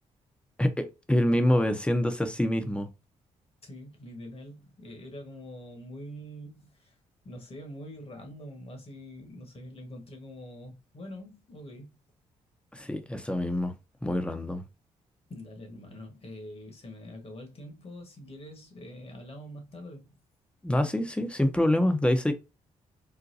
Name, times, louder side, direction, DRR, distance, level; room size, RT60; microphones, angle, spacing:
voice 1, 0.6-2.9 12.7-13.7 14.0-14.6 20.6-22.3, left 1 dB, 10° left, 0.8 m, -26 dB
voice 2, 3.6-7.0 7.2-12.0 15.3-20.2, equal, 45° left, 1.4 m, -44 dB
4.0 x 2.2 x 2.7 m
supercardioid pair, 55°, 14 cm